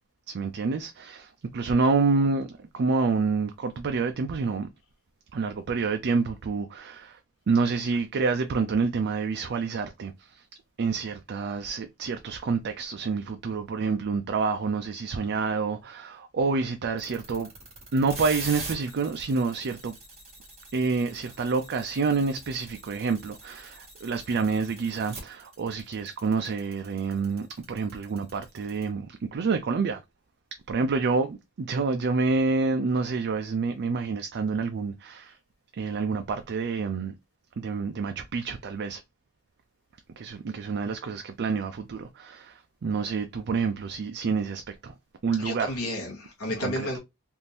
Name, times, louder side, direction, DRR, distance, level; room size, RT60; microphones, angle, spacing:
voice 1, 0.3-4.7 5.3-7.2 7.5-10.4 10.8-17.5 17.9-20.0 20.7-30.0 30.7-35.3 35.8-37.1 37.6-39.0 40.2-44.9 45.2-45.8 46.6-47.0, right 4 dB, 50° right, 0.4 m, -28 dB
sound 1, 17.0-28.8, right 3 dB, 30° right, 1.8 m, -42 dB
voice 2, 45.4-47.0, left 1 dB, 70° left, 1.0 m, -31 dB
3.5 x 2.5 x 2.7 m
head